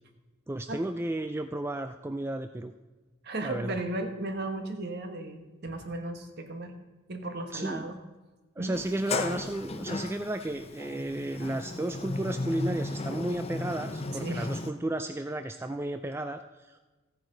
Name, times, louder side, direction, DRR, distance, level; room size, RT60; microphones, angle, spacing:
voice 1, 0.5-2.7 3.4-3.8 7.5-7.9 8.6-16.8, right 1 dB, 10° right, 8 dB, 0.3 m, -33 dB
voice 2, 3.2-6.7 7.1-8.0 8.6-8.7 14.2-14.5, right 2 dB, 50° right, 6 dB, 1.3 m, -35 dB
Sliding door, 8.7-14.7, left 2 dB, 30° left, 0.7 m, -35 dB
15.0 x 9.6 x 3.9 m, 1.2 s
head